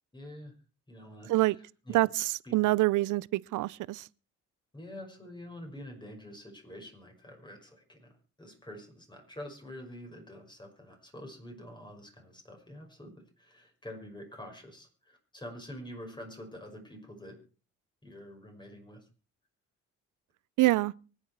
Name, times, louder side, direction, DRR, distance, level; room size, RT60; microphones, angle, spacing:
voice 1, 0.1-0.5 0.9-2.0 2.4-2.7 4.7-8.1 8.4-17.4 18.0-19.0, left 1 dB, 15° left, 5.8 m, -47 dB
voice 2, 1.9-4.1 20.6-20.9, right 18 dB, 80° right, 0.6 m, -26 dB
24.0 x 9.0 x 4.7 m
cardioid pair, 90°, 30 cm